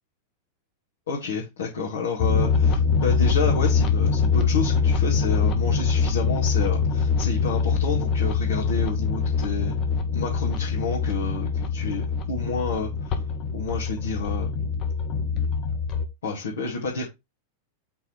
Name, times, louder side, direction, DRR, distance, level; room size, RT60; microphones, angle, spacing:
voice 1, 1.1-9.7 10.1-13.1 13.5-14.5 16.2-17.0, left 4 dB, 65° left, 2.0 m, -30 dB
sound 1, 2.2-16.1, left 5 dB, 35° left, 1.3 m, -23 dB
5.7 x 4.0 x 4.6 m
figure-of-eight pair, 90°, 0 cm